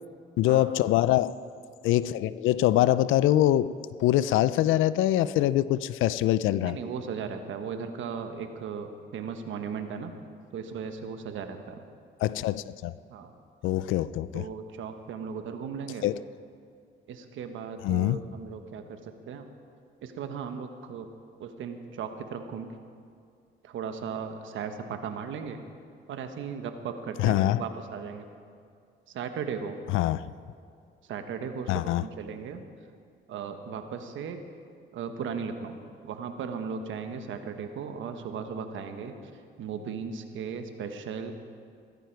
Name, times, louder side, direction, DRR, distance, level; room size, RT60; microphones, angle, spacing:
voice 1, 0.4-1.4 1.8-6.8 12.2-12.9 13.6-14.5 16.0-16.2 17.8-18.2 27.2-27.6 29.9-30.3 31.7-32.0, left 14 dB, 85° left, 17 dB, 0.4 m, -24 dB
voice 2, 6.6-10.1 10.5-11.8 13.1-13.3 14.3-16.1 17.1-19.5 20.0-21.1 21.4-22.7 23.6-25.6 26.1-28.3 29.1-29.8 31.1-32.6 33.3-34.4 34.9-39.1 39.6-41.3, right 6 dB, 75° right, 7 dB, 1.2 m, -36 dB
16.0 x 14.0 x 4.6 m, 2.3 s
cardioid pair, 90°, 20 cm